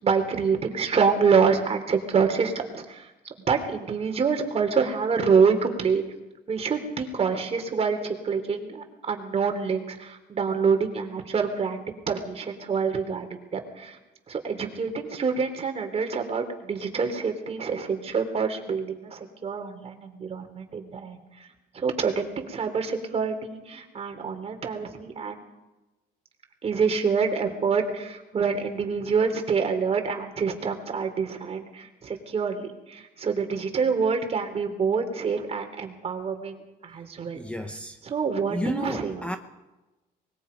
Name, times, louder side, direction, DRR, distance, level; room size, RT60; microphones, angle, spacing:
voice 1, 0.0-3.1 3.5-6.0 6.5-14.0 14.3-21.5 21.7-25.4 26.6-37.4 38.0-39.4, right 5 dB, 35° right, 3.7 m, -26 dB
voice 2, 37.3-38.0 38.5-39.4, left 1 dB, 5° left, 1.1 m, -32 dB
24.0 x 21.5 x 5.3 m
cardioid pair, 110°, 17 cm